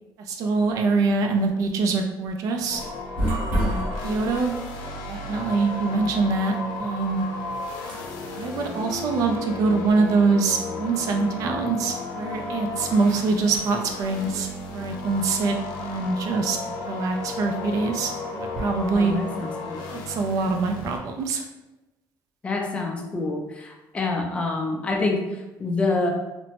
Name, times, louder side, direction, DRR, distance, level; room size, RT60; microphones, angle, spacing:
voice 1, 0.3-2.8 3.5-4.5 5.1-7.3 8.4-16.6 16.8-19.2 19.9-21.4, right 4 dB, 50° right, 3 dB, 0.4 m, -24 dB
sound 1, 2.5-10.0, right 1 dB, 80° right, 1.0 m, -32 dB
sound 2, 2.7-21.0, left 3 dB, 90° left, 0.5 m, -34 dB
voice 2, 18.9-19.9 22.4-25.2 25.6-26.1, left 3 dB, 15° left, 1 dB, 0.3 m, -26 dB
2.8 x 2.1 x 2.8 m, 1.0 s
cardioid pair, 170°, 7 cm